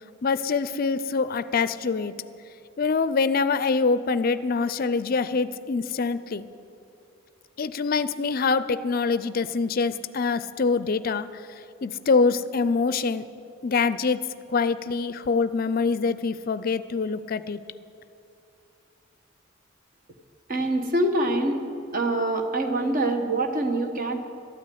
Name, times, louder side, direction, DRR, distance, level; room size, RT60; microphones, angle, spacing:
voice 1, 0.2-2.1 2.8-6.5 7.6-11.4 11.8-13.3 13.6-17.6, left 4 dB, 45° left, 14 dB, 0.5 m, -25 dB
voice 2, 20.5-21.6 21.9-24.2, right 1 dB, 40° right, 5 dB, 1.3 m, -25 dB
13.0 x 8.8 x 9.3 m, 2.6 s
head